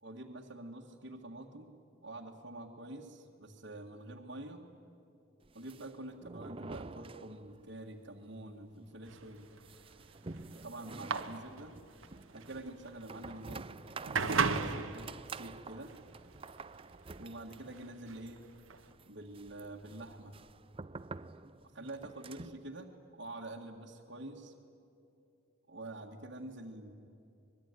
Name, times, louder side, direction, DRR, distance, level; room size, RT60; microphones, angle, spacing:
voice 1, 0.0-4.6 5.5-9.5 10.5-11.7 12.3-13.7 14.0-15.9 17.2-18.4 19.1-20.4 21.6-22.9 23.2-24.5 25.7-26.9, right 1 dB, 60° right, -4 dB, 1.9 m, -47 dB
sound 1, 5.4-7.8 8.1-8.2 8.5-8.6 9.0-22.7, right 3 dB, 25° right, 0.5 m, -49 dB
sound 2, 9.1-18.9, right 5 dB, 85° right, 1.5 m, -37 dB
25.5 x 21.5 x 9.8 m, 2.7 s
head